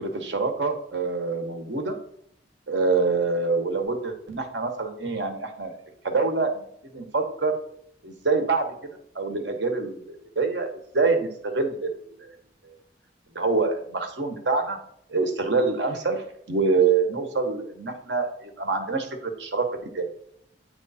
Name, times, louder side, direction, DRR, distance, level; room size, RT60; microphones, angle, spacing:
voice 1, 0.0-2.0 2.7-5.7 6.0-6.6 6.9-7.5 8.0-8.7 9.1-12.3 13.3-14.8 15.1-19.7 19.9-20.1, right 4 dB, 75° right, 5 dB, 1.1 m, -26 dB
8.5 x 3.2 x 4.1 m, 0.69 s
head